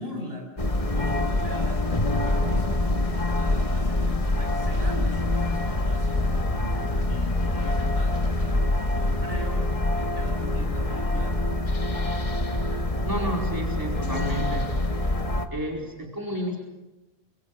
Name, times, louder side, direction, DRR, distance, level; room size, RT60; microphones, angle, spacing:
voice 1, 0.0-1.9 2.2-11.4, equal, 70° right, 1 dB, 7.7 m, -40 dB
sound 1, 0.6-15.5, left 2 dB, 35° left, 1.7 m, -25 dB
voice 2, 13.0-14.7 15.5-16.6, equal, 20° right, -1 dB, 4.7 m, -31 dB
28.0 x 27.0 x 6.7 m, 1.1 s
omnidirectional pair, 1.1 m